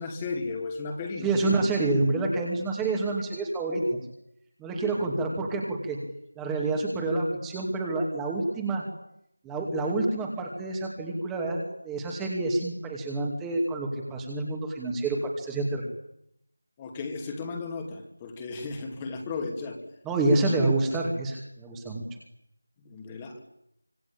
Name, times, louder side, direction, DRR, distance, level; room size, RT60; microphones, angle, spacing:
voice 1, 0.0-1.6 4.9-5.1 16.8-19.8 22.8-23.4, left 3 dB, 15° left, 2 dB, 2.7 m, -35 dB
voice 2, 1.2-3.8 4.6-6.0 6.4-8.8 9.4-15.8 20.1-22.0, right 2 dB, 5° right, 0 dB, 2.6 m, -28 dB
26.0 x 26.0 x 8.8 m, 0.78 s
figure-of-eight pair, 170°, 0 cm